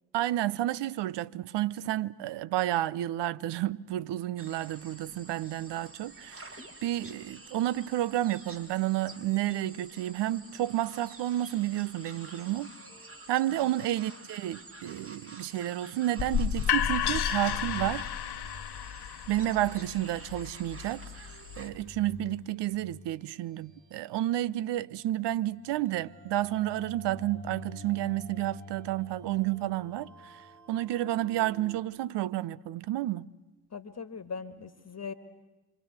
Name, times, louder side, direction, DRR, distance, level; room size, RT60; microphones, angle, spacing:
voice 1, 0.1-6.6 6.8-12.7 13.3-18.1 19.3-21.0 21.6-30.4 30.7-33.3, right 14 dB, 55° right, 0.8 m, -31 dB
sound 1, 4.4-21.7, right 2 dB, 25° right, 3.1 m, -50 dB
sound 2, 15.0-24.2 24.5-31.8, left 2 dB, 80° right, 4.6 m, -50 dB
sound 3, 16.2-22.0, left 10 dB, 50° left, 1.2 m, -32 dB
voice 2, 33.7-35.1, left 5 dB, 30° left, 1.8 m, -40 dB
27.0 x 25.0 x 8.1 m
hypercardioid pair, 45°, 50 cm